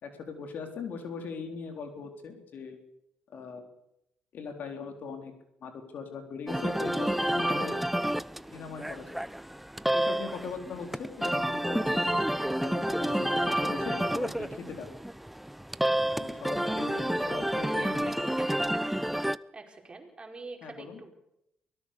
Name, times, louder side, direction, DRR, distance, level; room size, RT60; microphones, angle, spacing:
voice 1, 0.0-2.8 3.3-3.7 4.3-5.3 5.6-7.8 8.5-9.0 9.9-12.1 12.6-14.9 16.2-18.2 20.6-21.0, left 5 dB, 65° left, 5 dB, 4.0 m, -40 dB
sound 1, 6.5-19.4, right 1 dB, 5° right, 0.8 m, -29 dB
voice 2, 17.2-18.6 18.9-19.0 19.5-21.1, right 3 dB, 30° right, 3 dB, 5.0 m, -46 dB
24.0 x 17.5 x 6.9 m, 0.83 s
supercardioid pair, 55°, 3 cm